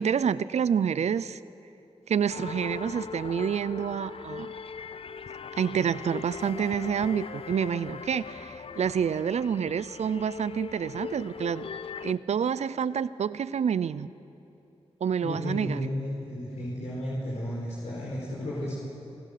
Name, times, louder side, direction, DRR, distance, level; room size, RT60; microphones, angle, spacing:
voice 1, 0.0-1.4 2.1-4.5 5.6-11.7 12.0-14.1 15.0-15.8, right 7 dB, 80° right, 17 dB, 0.6 m, -28 dB
sound 1, 2.3-12.1, left 6 dB, 55° left, 0.6 m, -40 dB
voice 2, 15.2-18.7, left 1 dB, 85° left, -6 dB, 4.6 m, -33 dB
28.0 x 16.0 x 6.8 m, 2.8 s
cardioid pair, 60°, 11 cm